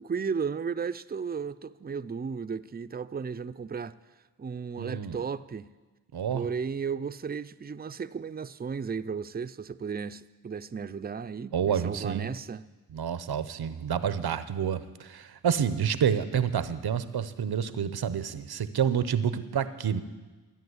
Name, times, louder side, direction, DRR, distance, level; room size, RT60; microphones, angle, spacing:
voice 1, 0.0-4.0 4.4-5.7 6.3-12.7, right 6 dB, 25° right, 0.5 m, -34 dB
voice 2, 4.8-5.2 6.1-6.4 11.5-12.3 12.9-20.0, right 8 dB, 90° right, 0.8 m, -28 dB
13.5 x 9.0 x 8.0 m
cardioid pair, 55°, 37 cm